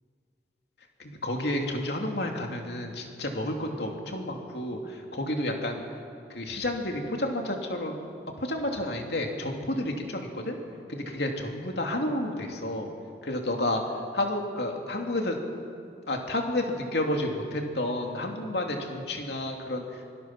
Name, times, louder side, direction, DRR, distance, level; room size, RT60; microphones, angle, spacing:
voice 1, 1.0-5.8 6.3-8.0 8.4-10.6 10.9-12.9 13.2-13.8 14.1-15.4 16.1-19.8, left 1 dB, 70° left, 2 dB, 2.7 m, -30 dB
25.5 x 20.0 x 6.0 m, 2.4 s
head